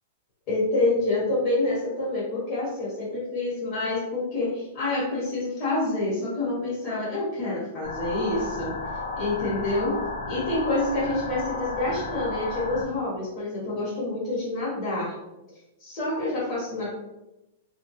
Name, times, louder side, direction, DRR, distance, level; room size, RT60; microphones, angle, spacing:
voice 1, 0.5-8.7 9.2-9.9 10.3-15.1 15.8-16.9, left 2 dB, 30° left, -8 dB, 1.1 m, -27 dB
sound 1, 7.8-12.8, left 3 dB, 70° left, 0.4 m, -33 dB
2.8 x 2.2 x 3.0 m, 0.94 s
supercardioid pair, 170°, 0 cm